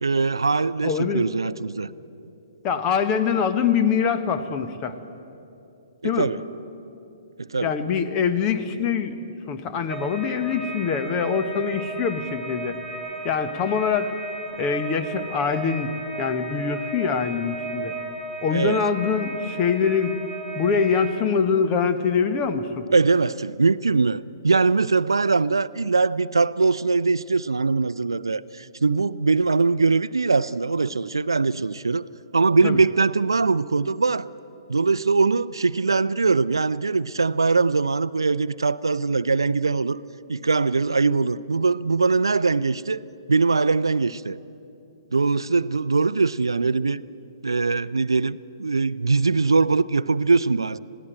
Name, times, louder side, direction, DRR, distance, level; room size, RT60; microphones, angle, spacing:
voice 1, 0.0-1.9 6.0-6.4 7.4-7.7 18.5-18.8 22.9-32.0 32.3-34.3 34.7-40.0 40.3-43.0 43.3-44.4 45.1-47.0 47.4-50.8, right 4 dB, 75° right, 0.5 m, -22 dB
voice 2, 0.8-1.2 2.6-4.9 6.0-6.3 7.6-9.2 9.5-12.8 13.2-14.1 14.6-18.0 18.4-20.2 20.5-22.9 32.6-32.8, left 6 dB, 30° left, 1.2 m, -24 dB
sound 1, 9.9-21.1, right 3 dB, 10° left, 3.7 m, -34 dB
21.0 x 16.0 x 9.0 m
figure-of-eight pair, 125°, 2 cm